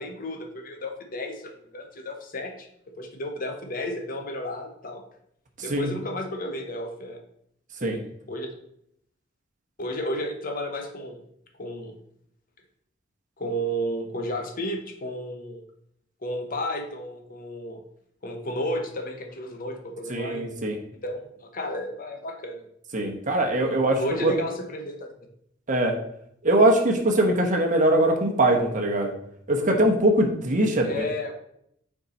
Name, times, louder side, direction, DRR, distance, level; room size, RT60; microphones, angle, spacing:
voice 1, 0.0-2.7 3.0-5.0 5.6-7.2 8.3-8.5 9.8-11.2 11.6-12.0 13.4-15.6 16.2-17.8 18.2-20.4 21.0-22.7 23.7-25.1 30.8-31.3, equal, 45° left, 4 dB, 1.0 m, -32 dB
voice 2, 20.1-20.8 22.9-24.3 25.7-25.9 26.4-29.1 29.5-31.0, right 1 dB, 40° right, 2 dB, 1.1 m, -22 dB
6.5 x 4.7 x 4.3 m, 0.72 s
head